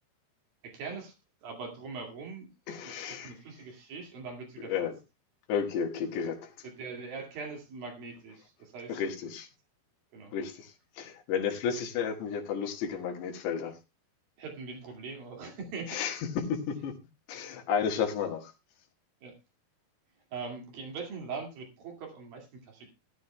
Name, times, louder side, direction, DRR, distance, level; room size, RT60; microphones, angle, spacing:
voice 1, 0.6-1.1 1.4-4.9 6.6-8.9 10.1-10.3 14.4-16.0 19.2-19.4 20.3-22.9, right 4 dB, 60° right, 2 dB, 3.7 m, -42 dB
voice 2, 2.7-3.4 4.6-4.9 5.5-6.7 8.9-9.5 10.3-13.8 15.9-16.9 17.3-18.5, left 7 dB, 75° left, 3 dB, 3.6 m, -32 dB
18.5 x 11.5 x 2.2 m, 0.24 s
omnidirectional pair, 5.0 m